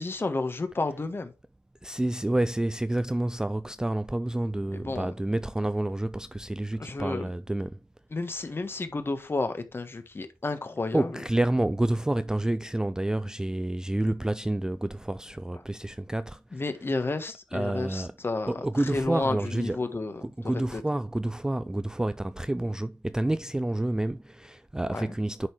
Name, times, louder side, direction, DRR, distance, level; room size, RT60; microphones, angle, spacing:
voice 1, 0.0-1.3 4.7-5.1 6.8-7.3 8.1-11.1 16.5-18.6 18.9-20.2 20.7-20.8 24.9-25.1, left 3 dB, 30° left, 1.4 m, -31 dB
voice 2, 1.8-7.8 10.9-16.6 17.5-18.2 18.5-19.9 20.2-25.5, right 1 dB, 10° right, 0.3 m, -29 dB
10.0 x 4.0 x 4.6 m
wide cardioid pair, 100°, 7 cm